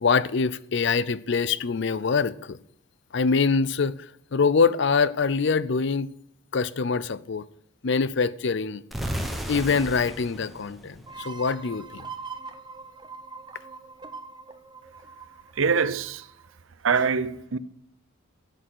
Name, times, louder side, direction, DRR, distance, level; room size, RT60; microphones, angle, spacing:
voice 1, 0.0-2.6 3.1-4.0 4.3-6.1 6.5-7.4 7.8-8.8 9.5-12.0, left 5 dB, 55° left, 0.5 m, -24 dB
sound 1, 8.9-11.8, equal, ahead, 1.2 m, -34 dB
sound 2, 11.1-16.5, right 4 dB, 20° right, 0.8 m, -42 dB
voice 2, 15.5-16.3 16.8-17.6, right 5 dB, 70° right, 0.6 m, -24 dB
11.5 x 8.0 x 6.2 m
head